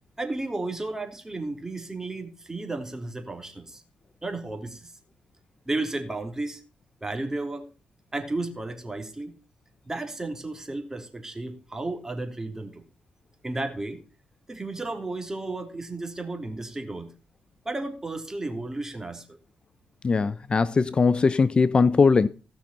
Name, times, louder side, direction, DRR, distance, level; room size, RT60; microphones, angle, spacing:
voice 1, 0.2-3.8 4.2-4.9 5.6-6.6 7.0-7.7 8.1-9.3 9.8-12.8 13.4-14.0 14.5-17.1 17.6-19.4, right 2 dB, 20° right, 3.2 m, -33 dB
voice 2, 20.0-22.3, left 4 dB, 35° left, 0.6 m, -20 dB
17.0 x 6.0 x 5.6 m
cardioid pair, 80°, 3 cm